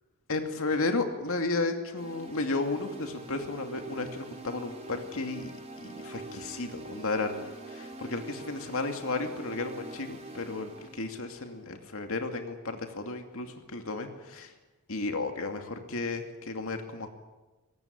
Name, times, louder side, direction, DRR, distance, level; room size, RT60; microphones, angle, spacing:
voice 1, 0.3-14.5 14.9-17.1, left 3 dB, 70° left, 5 dB, 2.5 m, -33 dB
sound 1, 1.9-12.0, right 2 dB, 30° right, 4.1 m, -44 dB
23.0 x 18.5 x 8.7 m, 1.1 s
head